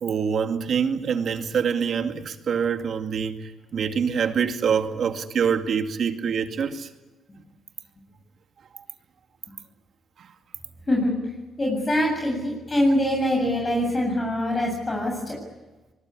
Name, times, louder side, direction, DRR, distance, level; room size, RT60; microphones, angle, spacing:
voice 1, 0.0-6.9 8.7-8.8 10.2-10.3, right 6 dB, 60° right, 2.2 m, -25 dB
voice 2, 11.6-15.4, left 1 dB, 25° left, 7.5 m, -23 dB
23.5 x 21.5 x 9.8 m
cardioid pair, 85°, 0 cm